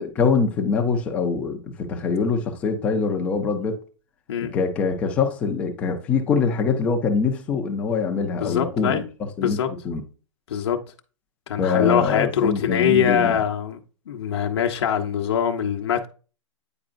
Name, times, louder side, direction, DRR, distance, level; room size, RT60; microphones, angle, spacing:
voice 1, 0.0-3.8 4.5-9.0 9.4-10.0 11.6-13.3, left 5 dB, 10° left, 0.5 m, -23 dB
voice 2, 8.4-9.0 9.4-9.7 10.5-10.8 11.5-13.8 14.1-16.1, left 8 dB, 55° left, 0.8 m, -23 dB
8.7 x 4.7 x 2.5 m
hypercardioid pair, 175°, 16 cm